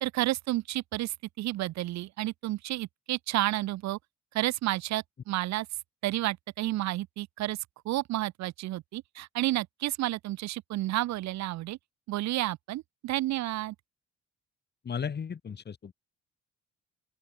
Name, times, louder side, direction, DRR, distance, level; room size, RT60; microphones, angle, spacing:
voice 1, 0.0-4.0 4.3-5.7 6.0-7.6 7.8-11.8 12.1-13.8, right 16 dB, 65° right, 0.5 m, -31 dB
voice 2, 14.8-15.9, left 6 dB, 35° left, 1.1 m, -35 dB
open air
cardioid pair, 90°, 30 cm